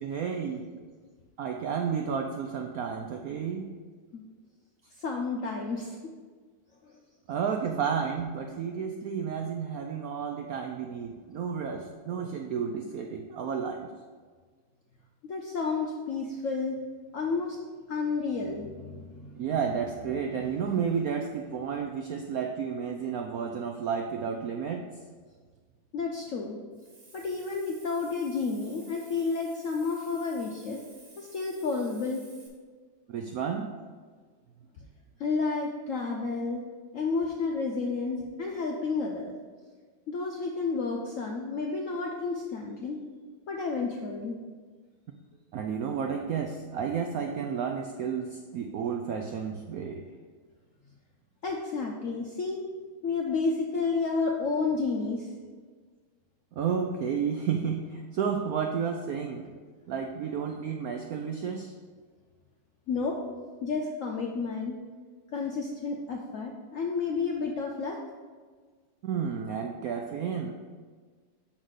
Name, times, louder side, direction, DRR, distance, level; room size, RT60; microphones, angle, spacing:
voice 1, 0.0-0.6 1.4-3.7 7.3-13.9 19.4-24.8 33.1-33.7 45.5-50.0 56.6-59.5 59.9-61.7 69.0-70.5, right 6 dB, 80° right, 3 dB, 0.8 m, -31 dB
voice 2, 5.0-6.0 6.8-7.0 15.2-16.8 17.1-17.6 17.9-19.5 20.3-20.6 25.9-26.6 27.1-30.8 31.2-32.2 35.2-36.6 36.9-39.3 40.1-43.0 43.5-44.4 51.4-52.6 53.0-55.3 62.9-63.2 63.6-64.8 65.3-68.0, left 4 dB, 70° left, 0 dB, 0.7 m, -31 dB
Hiss, 26.7-32.5, right 3 dB, 50° right, 1.8 m, -54 dB
6.2 x 4.0 x 6.3 m, 1.5 s
omnidirectional pair, 2.1 m